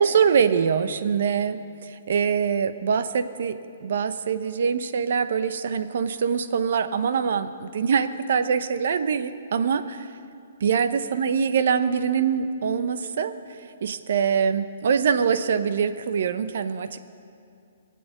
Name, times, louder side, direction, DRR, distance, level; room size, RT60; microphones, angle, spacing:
voice 1, 0.0-10.1 10.6-13.3 13.8-17.0, right 6 dB, 65° right, 11 dB, 0.8 m, -24 dB
20.5 x 7.7 x 8.0 m, 2.4 s
hypercardioid pair, 165°, 0 cm